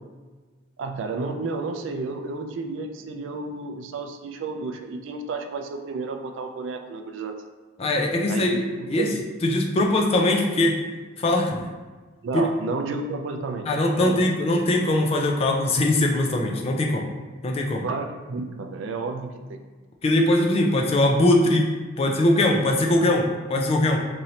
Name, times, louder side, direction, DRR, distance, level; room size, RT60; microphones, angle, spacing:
voice 1, 0.8-7.4 8.3-9.2 12.2-14.2 17.8-19.6, right 3 dB, 70° right, 5 dB, 0.3 m, -31 dB
voice 2, 7.8-9.1 9.4-10.8 11.2-11.6 13.7-17.1 17.4-17.8 20.0-24.0, left 1 dB, 30° left, 1 dB, 0.4 m, -21 dB
3.1 x 2.6 x 2.7 m, 1.3 s
head